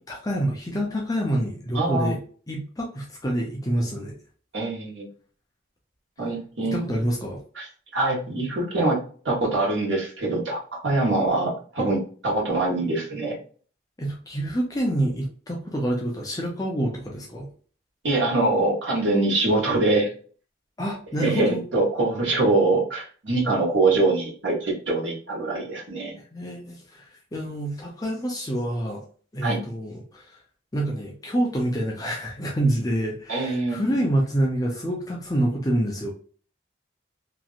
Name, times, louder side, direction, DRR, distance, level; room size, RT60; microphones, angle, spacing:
voice 1, 0.1-2.2 2.5-4.2 6.6-7.4 14.0-17.5 20.8-21.6 26.3-29.0 29.3-30.4 30.7-36.1, right 1 dB, 20° left, -1 dB, 0.5 m, -27 dB
voice 2, 1.7-2.1 4.5-5.0 6.2-6.8 7.6-7.7 7.9-13.4 18.0-20.1 21.2-26.1 29.4-29.6 33.3-33.8, right 2 dB, 80° right, -4 dB, 1.3 m, -24 dB
3.0 x 2.6 x 2.4 m, 0.42 s
head